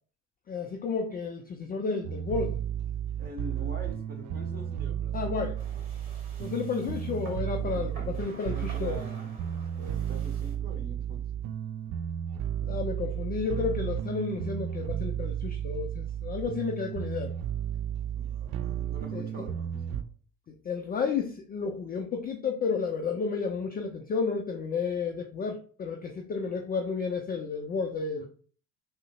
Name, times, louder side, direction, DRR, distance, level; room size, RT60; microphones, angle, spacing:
voice 1, 0.5-2.6 5.1-5.7 6.4-9.0 12.6-17.3 19.1-19.5 20.5-28.3, left 5 dB, 25° left, 3 dB, 0.4 m, -32 dB
sound 1, 2.0-20.0, right 10 dB, 45° right, 0.5 m, -33 dB
voice 2, 3.2-5.7 7.6-11.2 18.2-20.1, right 1 dB, 20° right, 0 dB, 1.2 m, -45 dB
sound 2, 5.5-10.6, right 3 dB, 85° right, 0.8 m, -50 dB
3.7 x 2.1 x 2.3 m, 0.42 s
hypercardioid pair, 60°, 43 cm